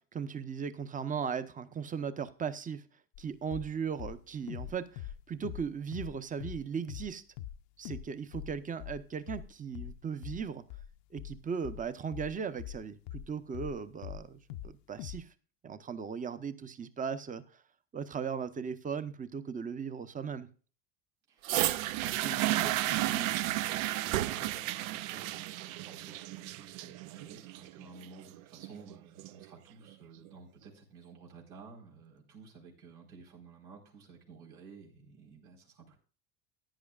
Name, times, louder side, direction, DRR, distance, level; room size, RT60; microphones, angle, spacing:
voice 1, 0.1-2.8 3.2-7.2 7.8-10.6 11.1-15.3 15.6-17.4 17.9-20.5, right 6 dB, 20° right, 13 dB, 0.8 m, -37 dB
sound 1, 3.2-3.3 3.5-3.7 4.0-6.2 6.4-6.6 6.9-7.1 7.4-7.6 7.9-8.1 8.3-13.8 14.0-14.7 15.0-15.2, left 12 dB, 60° left, 0.7 m, -42 dB
voice 2, 21.3-36.0, right 4 dB, 90° right, -1 dB, 4.4 m, -51 dB
sound 2, 21.4-29.4 30.2-30.3, right 15 dB, 75° right, 0.7 m, -33 dB
14.0 x 10.0 x 2.4 m, 0.38 s
supercardioid pair, 105°, 42 cm